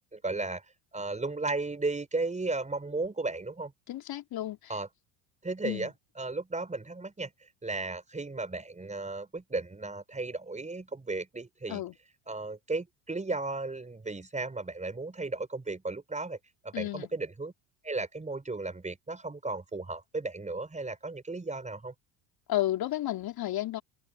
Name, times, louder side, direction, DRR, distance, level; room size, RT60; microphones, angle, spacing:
voice 1, 0.1-0.6 0.9-3.7 4.7-4.9 5.4-5.9 6.2-7.3 7.6-11.8 12.3-16.4 16.6-17.5 17.8-21.9, right 3 dB, 15° right, 4.7 m, -35 dB
voice 2, 3.9-4.8 5.6-5.9 11.7-12.0 16.7-17.1 22.5-23.8, left 14 dB, 55° left, 4.0 m, -32 dB
hypercardioid pair, 80°, 45 cm